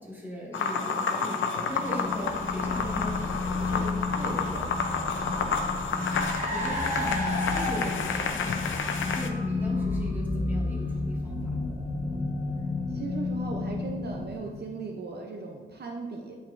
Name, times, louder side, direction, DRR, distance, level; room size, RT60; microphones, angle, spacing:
voice 1, 0.0-4.7 5.1-5.5 5.9-6.2 6.4-8.6 9.0-11.7, left 1 dB, 10° right, -5 dB, 1.8 m, -38 dB
sound 1, 0.5-9.3, left 5 dB, 75° left, 0.6 m, -30 dB
sound 2, 1.6-14.4, left 3 dB, 20° left, 0.8 m, -32 dB
voice 2, 4.2-4.6 12.9-16.4, right 4 dB, 55° right, 1 dB, 0.6 m, -38 dB
Car, 4.9-12.6, equal, 40° right, 1.4 m, -34 dB
8.9 x 5.6 x 2.5 m, 1.5 s
wide cardioid pair, 140°, 20 cm